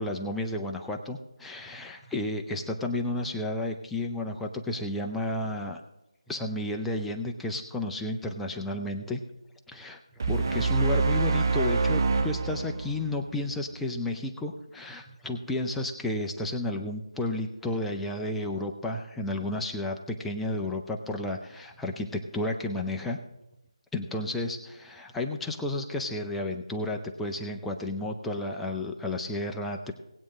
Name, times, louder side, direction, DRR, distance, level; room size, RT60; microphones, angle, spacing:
voice 1, 0.0-5.8 6.3-9.2 9.7-23.2 23.9-29.9, left 1 dB, 5° left, 2 dB, 0.4 m, -32 dB
sound 1, 10.2-13.5, right 4 dB, 40° right, 0.6 m, -26 dB
19.0 x 8.5 x 3.2 m, 0.92 s
figure-of-eight pair, 165°, 3 cm